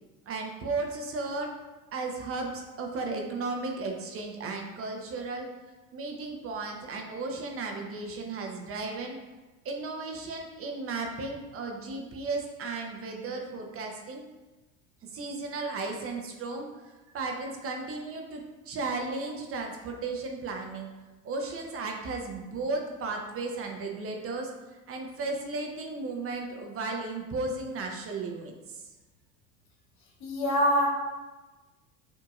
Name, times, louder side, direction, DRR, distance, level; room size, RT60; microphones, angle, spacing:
voice 1, 0.3-1.5 1.9-5.5 5.9-9.2 9.6-14.2 15.0-20.9 21.2-24.5 24.9-28.8, right 3 dB, 30° right, 2 dB, 0.7 m, -35 dB
voice 2, 30.2-30.9, equal, 65° left, -1 dB, 1.4 m, -24 dB
6.5 x 2.8 x 2.4 m, 1.1 s
hypercardioid pair, 75°, 43 cm